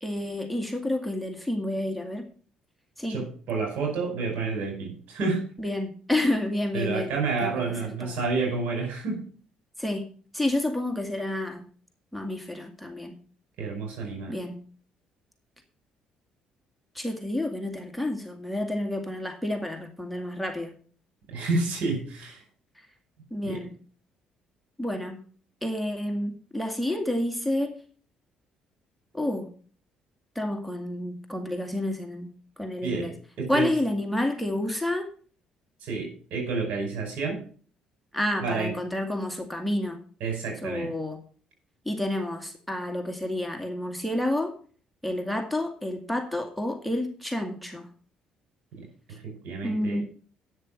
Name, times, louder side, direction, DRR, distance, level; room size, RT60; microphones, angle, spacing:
voice 1, 0.0-2.3 3.0-3.2 5.6-7.1 7.4-8.2 9.8-10.1 10.3-11.7 12.1-13.2 14.3-14.6 16.9-20.7 23.3-23.7 24.8-25.2 25.6-27.7 29.1-29.5 30.4-32.3 32.6-33.1 33.5-35.1 38.1-40.0 40.6-41.2 41.9-44.5 45.0-47.9 49.1-49.2 49.6-50.0, left 1 dB, ahead, 5 dB, 2.1 m, -29 dB
voice 2, 3.1-5.4 6.7-9.3 13.6-14.3 21.3-22.4 23.4-23.6 32.8-33.1 33.4-33.7 35.8-37.4 38.4-38.8 40.2-40.9 48.8-50.0, right 4 dB, 75° right, 2 dB, 5.3 m, -30 dB
9.5 x 6.6 x 7.3 m, 0.43 s
supercardioid pair, 70°, 3 cm